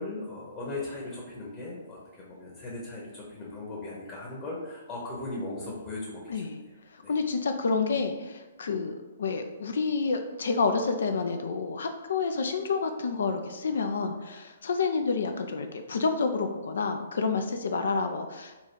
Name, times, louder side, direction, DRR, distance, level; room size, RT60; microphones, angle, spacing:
voice 1, 0.0-6.5 7.0-7.1, left 2 dB, 25° left, -5 dB, 1.0 m, -38 dB
voice 2, 6.3-6.6 6.9-8.9 9.2-18.5, left 4 dB, 60° left, 6 dB, 0.3 m, -29 dB
4.0 x 2.3 x 4.5 m, 1.1 s
figure-of-eight pair, 125°, 0 cm